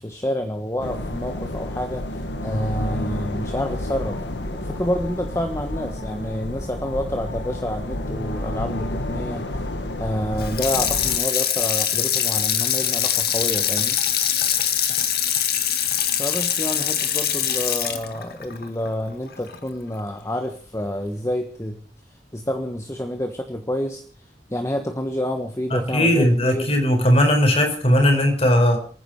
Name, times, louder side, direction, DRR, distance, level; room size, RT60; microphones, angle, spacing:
voice 1, 0.0-4.2 4.5-9.5 10.0-14.0 16.2-21.8 22.3-24.0 24.5-26.7, left 1 dB, 15° left, 1.4 m, -28 dB
sound 1, 0.8-11.2, left 1 dB, 85° left, 1.6 m, -30 dB
Water tap faucet / Sink (filling or washing), 10.4-19.6 20.0-20.1, left 9 dB, 60° left, 1.8 m, -23 dB
voice 2, 25.7-28.8, equal, 35° left, 4.5 m, -18 dB
28.5 x 10.0 x 4.8 m
head